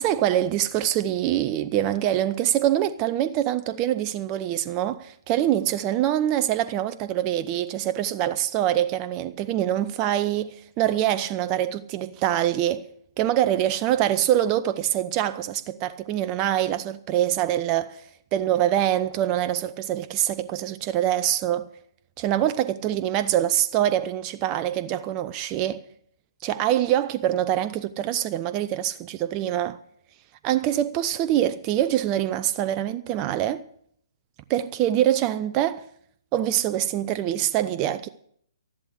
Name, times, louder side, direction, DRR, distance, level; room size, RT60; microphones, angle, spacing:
voice 1, 0.0-12.9 13.2-18.0 18.3-21.7 22.2-25.8 26.4-29.8 30.4-33.6 34.5-35.8 36.3-38.1, right 12 dB, 25° right, 0.6 m, -24 dB
13.0 x 11.5 x 6.5 m
figure-of-eight pair, 135°, 3 cm